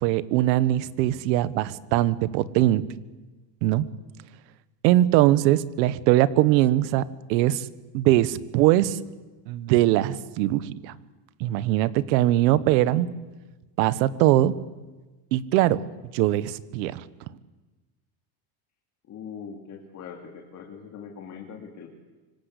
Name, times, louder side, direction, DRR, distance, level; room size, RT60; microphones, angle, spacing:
voice 1, 0.0-2.8 3.6-3.8 4.8-7.7 7.9-9.0 9.5-10.9 11.4-13.1 13.8-14.5 15.3-15.8 16.1-17.0, right 14 dB, 85° right, 16 dB, 1.5 m, -21 dB
voice 2, 19.1-21.9, left 6 dB, 35° left, 2 dB, 3.0 m, -41 dB
25.5 x 25.0 x 8.5 m, 1.2 s
cardioid pair, 170°, 49 cm